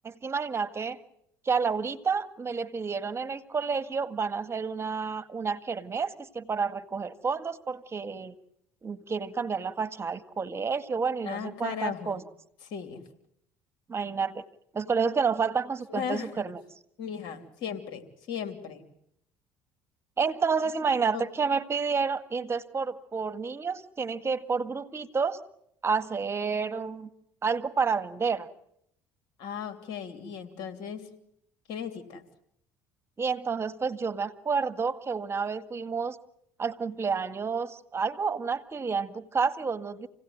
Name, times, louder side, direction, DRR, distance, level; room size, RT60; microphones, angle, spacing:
voice 1, 0.0-1.0 1.4-8.3 8.8-12.2 13.9-14.4 14.7-16.6 20.2-25.4 25.8-27.1 27.4-28.5 33.2-36.2 36.6-40.1, right 5 dB, 30° right, 13 dB, 1.6 m, -30 dB
voice 2, 11.2-12.2 12.6-13.0 15.9-16.4 17.0-18.8 21.1-21.2 29.4-31.1 31.7-32.2, left 7 dB, 70° left, 8 dB, 3.1 m, -36 dB
28.0 x 17.5 x 9.4 m, 0.76 s
hypercardioid pair, 70°, 8 cm